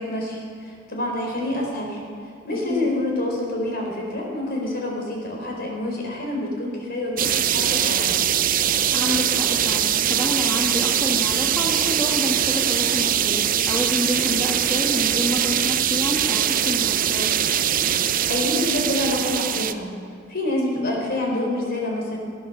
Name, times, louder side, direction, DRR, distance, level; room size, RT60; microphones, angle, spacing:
voice 1, 0.0-2.0 2.5-8.1 18.3-19.9 20.3-22.2, left 1 dB, 50° left, -1 dB, 4.3 m, -27 dB
sound 1, 7.2-19.7, right 10 dB, 45° right, 0.6 m, -22 dB
voice 2, 8.9-17.3 20.6-21.0, left 1 dB, 15° left, -3 dB, 1.6 m, -28 dB
18.5 x 11.0 x 6.7 m, 2.3 s
head